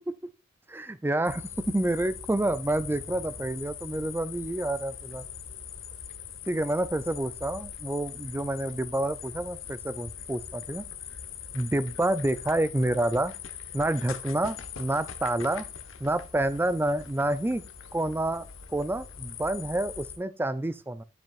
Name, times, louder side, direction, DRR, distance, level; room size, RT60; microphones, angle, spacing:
voice 1, 0.7-5.2 6.5-10.8 11.5-13.3 13.7-15.7 16.0-17.6 17.9-18.5 18.7-21.0, right 1 dB, 10° right, 0.3 m, -28 dB
sound 1, 1.2-20.2, left 8 dB, 80° left, 0.9 m, -42 dB
7.6 x 7.3 x 2.4 m
head